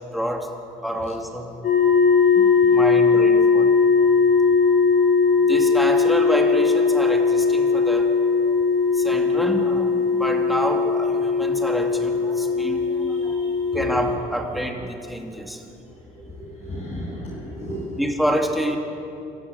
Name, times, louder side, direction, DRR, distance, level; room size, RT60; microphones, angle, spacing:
voice 1, 0.1-0.5 0.8-1.6 2.3-3.7 5.4-8.1 8.9-13.4 13.7-15.6 18.0-18.8, equal, ahead, 1 dB, 3.0 m, -28 dB
sound 1, 1.6-14.1, left 5 dB, 65° left, 5.6 m, -19 dB
voice 2, 16.1-18.0, equal, 35° left, -7 dB, 7.7 m, -34 dB
27.0 x 15.5 x 8.4 m, 2.8 s
cardioid pair, 110°, 17 cm